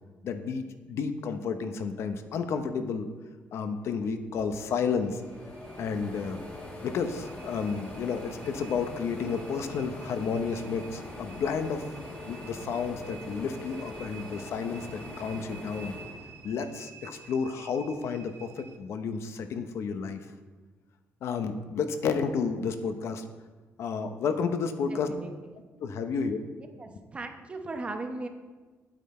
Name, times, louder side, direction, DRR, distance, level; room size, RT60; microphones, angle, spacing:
voice 1, 0.2-3.1 3.5-5.2 5.8-6.4 6.8-11.8 12.3-15.9 16.4-20.3 21.2-23.2 23.8-25.1 25.8-26.5, left 5 dB, 60° left, 9 dB, 0.8 m, -31 dB
sound 1, 4.4-17.0 17.4-18.5, left 2 dB, 25° left, 1.7 m, -43 dB
sound 2, 5.0-18.8, right 7 dB, 65° right, 1.1 m, -52 dB
voice 2, 24.9-25.3 26.6-28.3, right 2 dB, 25° right, 5 dB, 1.0 m, -38 dB
9.5 x 9.0 x 4.3 m, 1.3 s
cardioid pair, 140°, 5 cm